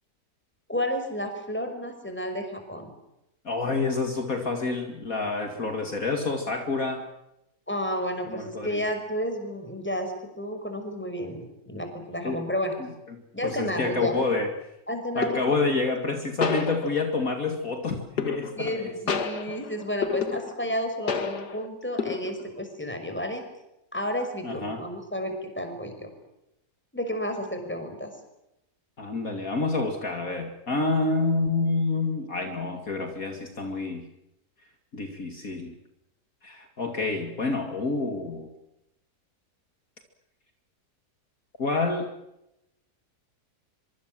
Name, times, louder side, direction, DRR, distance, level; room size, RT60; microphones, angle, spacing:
voice 1, 0.7-2.9 7.7-12.8 13.3-14.1 14.9-15.4 18.6-23.4 23.9-26.1 26.9-28.1, equal, 5° left, 6 dB, 5.6 m, -31 dB
voice 2, 3.4-7.1 8.3-8.8 12.2-12.4 12.8-14.5 15.2-18.9 24.4-24.8 29.0-34.0 34.9-35.8 36.4-38.5 41.6-42.1, left 3 dB, 55° left, 5 dB, 2.8 m, -28 dB
sound 1, 15.2-15.7 16.4-17.3 18.2-18.8 19.1-20.8 21.1-21.7 22.0-22.6, left 6 dB, 75° left, 2.5 m, -30 dB
25.0 x 24.0 x 7.7 m, 0.87 s
omnidirectional pair, 1.7 m